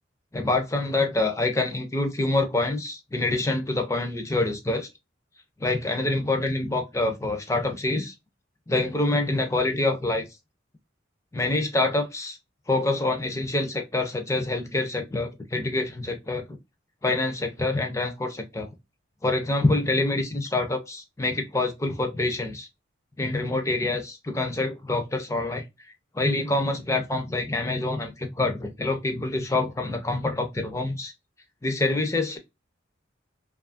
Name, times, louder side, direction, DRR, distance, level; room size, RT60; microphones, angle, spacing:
voice 1, 0.3-4.9 5.6-8.1 8.7-10.3 11.3-12.4 12.7-16.6 17.0-18.7 19.2-22.7 23.2-25.6 26.1-31.1 31.6-32.4, left 2 dB, 15° left, 0.4 m, -26 dB
2.7 x 2.4 x 2.4 m
head